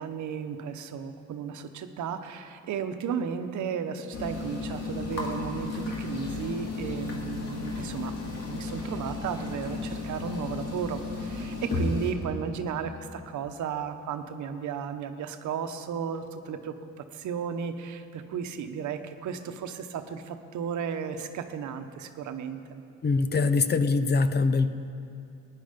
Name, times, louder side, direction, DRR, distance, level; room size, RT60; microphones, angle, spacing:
voice 1, 0.0-22.8, right 7 dB, 75° right, 8 dB, 1.0 m, -34 dB
sound 1, 4.1-12.1, left 3 dB, 55° left, 2.6 m, -34 dB
voice 2, 23.0-24.7, left 4 dB, 35° left, 11 dB, 0.6 m, -23 dB
17.0 x 10.0 x 5.2 m, 2.6 s
cardioid pair, 90°, 30 cm